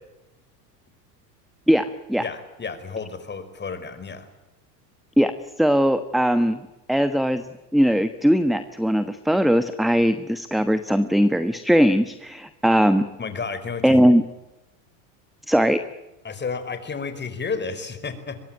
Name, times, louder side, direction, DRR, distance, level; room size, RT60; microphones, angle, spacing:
voice 1, 1.7-2.2 5.2-5.3 5.6-6.6 6.9-7.4 7.7-13.1 13.8-14.2 15.5-15.8, equal, ahead, 11 dB, 1.2 m, -19 dB
voice 2, 2.2-4.3 13.2-14.0 16.2-18.4, left 5 dB, 20° left, 11 dB, 4.8 m, -31 dB
24.0 x 21.5 x 9.2 m, 1.0 s
hypercardioid pair, 100°, 49 cm